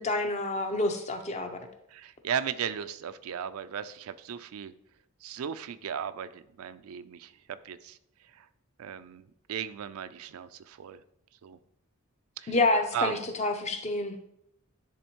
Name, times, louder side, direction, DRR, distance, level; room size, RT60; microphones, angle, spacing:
voice 1, 0.0-1.6 12.5-14.2, left 2 dB, 30° left, 6 dB, 0.6 m, -28 dB
voice 2, 1.9-4.7 5.2-8.0 8.3-8.5 8.8-11.0 11.4-11.6 12.4-12.6 12.9-13.2, right 8 dB, 80° right, 13 dB, 0.4 m, -36 dB
10.0 x 3.5 x 3.0 m, 0.74 s
head